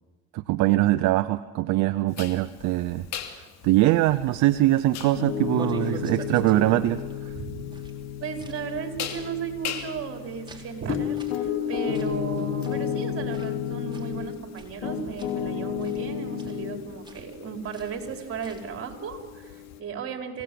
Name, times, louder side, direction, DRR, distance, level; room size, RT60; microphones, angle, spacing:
voice 1, 0.3-3.1 3.6-7.0, right 16 dB, 70° right, 12 dB, 0.8 m, -22 dB
sound 1, 2.1-19.8, left 10 dB, 65° left, 2.7 m, -38 dB
sound 2, 4.5-18.8, right 3 dB, 15° right, 3.9 m, -46 dB
Piano, 5.0-14.4 14.8-16.8, left 8 dB, 85° left, 2.8 m, -32 dB
voice 2, 8.2-20.4, right 6 dB, 50° right, 4 dB, 4.3 m, -35 dB
26.5 x 18.0 x 7.8 m, 1.3 s
supercardioid pair, 85°, 29 cm